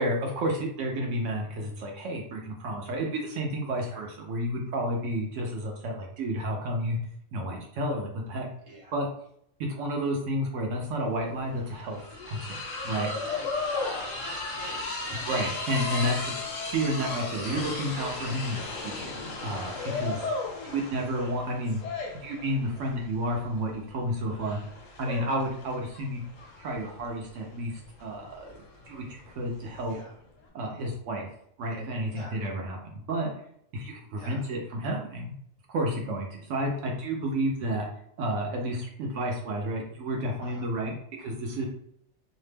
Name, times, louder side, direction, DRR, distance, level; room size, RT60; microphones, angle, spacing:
voice 1, 0.0-7.0 7.3-8.5 8.9-9.1 9.7-12.0 12.3-12.6 12.8-13.1 15.2-16.3 16.6-19.1 19.4-20.3 20.6-21.8 22.1-24.6 25.0-26.2 26.6-29.9 30.5-31.3 31.6-33.3 33.7-35.3 35.7-37.9 38.2-41.7, right 1 dB, 75° right, 0 dB, 0.9 m, -31 dB
sound 1, 10.8-10.9 11.1-30.0, left 3 dB, 85° left, 1.1 m, -36 dB
voice 2, 13.2-15.3 19.9-20.1 29.9-30.2 32.1-32.4 34.1-34.4 40.4-40.7 41.6-41.7, equal, 30° right, -4 dB, 0.8 m, -44 dB
2.8 x 2.1 x 3.2 m, 0.69 s
omnidirectional pair, 1.3 m